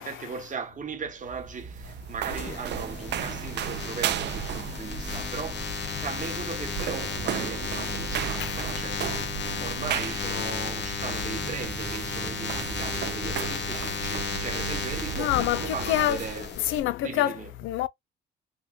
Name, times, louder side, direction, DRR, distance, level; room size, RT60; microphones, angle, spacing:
voice 1, 0.0-16.5 17.0-17.5, right 5 dB, 40° right, 1.1 m, -38 dB
sound 1, 1.1-16.4, right 9 dB, 60° right, 0.5 m, -35 dB
sound 2, 2.3-16.8, left 5 dB, 60° left, 1.1 m, -34 dB
sound 3, 2.3-10.3, left 3 dB, 5° left, 0.8 m, -46 dB
voice 2, 13.3-13.6 15.2-16.2 16.7-17.9, left 13 dB, 85° left, 0.4 m, -27 dB
3.5 x 2.2 x 2.6 m
cardioid pair, 90°, 20 cm